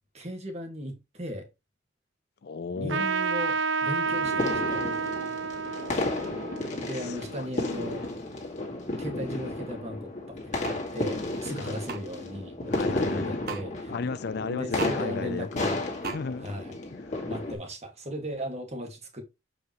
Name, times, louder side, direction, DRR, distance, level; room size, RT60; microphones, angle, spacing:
voice 1, 0.1-1.5 2.7-4.8 6.8-8.1 9.0-13.9 14.4-15.8 16.4-16.7 17.3-19.2, equal, 35° right, 1.9 m, -37 dB
voice 2, 2.4-3.1 7.0-7.5 11.6-11.8 12.7-13.4 13.9-15.7 16.1-16.5 16.9-17.3, left 4 dB, 55° left, 0.4 m, -35 dB
Trumpet, 2.9-7.9, right 5 dB, 65° right, 0.5 m, -30 dB
sound 1, 4.1-17.6, left 2 dB, 40° left, 1.9 m, -33 dB
sound 2, 10.6-10.8 11.9-12.0 13.5-13.6 14.8-15.0 16.0-16.2, right 4 dB, 50° right, 1.3 m, -34 dB
7.2 x 5.0 x 3.0 m
head